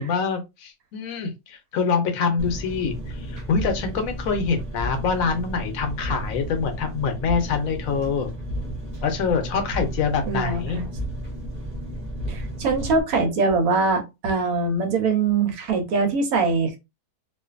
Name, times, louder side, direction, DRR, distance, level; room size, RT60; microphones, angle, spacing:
voice 1, 0.0-2.9 3.3-8.3 9.0-10.9, left 5 dB, 70° left, 1.0 m, -25 dB
Engine, 2.4-13.0, right 1 dB, 35° right, 1.0 m, -33 dB
voice 2, 10.3-10.6 12.3-16.8, right 4 dB, 75° right, 1.2 m, -22 dB
2.5 x 2.4 x 2.4 m
omnidirectional pair, 1.6 m